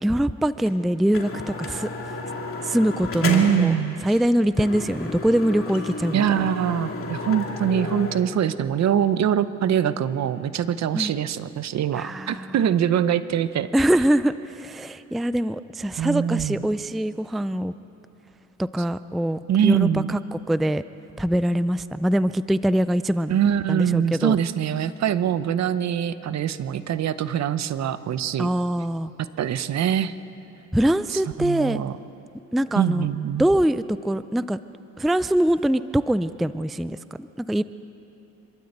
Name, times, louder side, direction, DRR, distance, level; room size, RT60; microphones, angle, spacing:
voice 1, 0.0-1.3 1.6-1.9 2.6-3.7 4.0-6.4 10.9-11.1 11.9-12.5 13.7-17.7 18.6-20.8 21.2-23.4 23.7-24.4 28.4-29.1 30.7-31.8 32.5-33.1 33.4-34.6 35.0-37.6, right 1 dB, ahead, 14 dB, 0.4 m, -23 dB
sound 1, 0.7-0.8 1.1-3.7 4.1-4.3 4.6-8.2, left 3 dB, 45° left, 2.7 m, -32 dB
voice 2, 3.2-4.0 6.1-13.7 16.0-16.6 19.5-20.2 23.3-28.5 29.4-30.1 31.1-32.0 32.8-33.5, right 9 dB, 60° right, 13 dB, 0.8 m, -23 dB
26.5 x 13.0 x 8.0 m, 2.9 s
cardioid pair, 90°, 30 cm